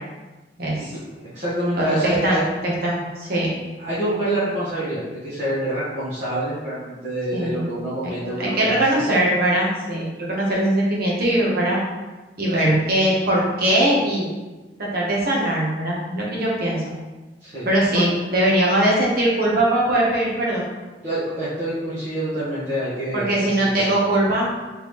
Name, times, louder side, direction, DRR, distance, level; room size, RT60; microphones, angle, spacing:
voice 1, 0.6-0.9 1.8-3.5 7.3-7.7 8.0-8.1 8.4-11.8 12.4-14.3 14.8-16.8 17.6-20.6 23.1-24.5, right 1 dB, 55° right, -4 dB, 1.2 m, -21 dB
voice 2, 1.3-2.4 3.8-9.0 12.5-12.8 17.4-18.0 21.0-23.3 23.6-24.0, right 1 dB, 40° right, -13 dB, 1.3 m, -26 dB
3.8 x 3.5 x 3.2 m, 1.2 s
head